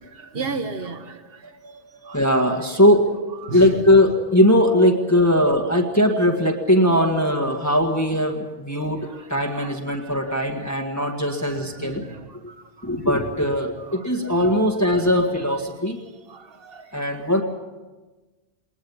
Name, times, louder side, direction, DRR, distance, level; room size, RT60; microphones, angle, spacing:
voice 1, 0.0-2.2 3.4-3.7 9.0-10.4 11.0-13.1 13.8-14.0 16.3-17.2, right 4 dB, 65° right, 9 dB, 1.6 m, -37 dB
voice 2, 2.1-3.1 3.5-12.0 12.8-16.0 16.9-17.4, left 1 dB, 15° left, 2 dB, 1.8 m, -20 dB
21.5 x 20.0 x 7.2 m, 1.2 s
omnidirectional pair, 1.0 m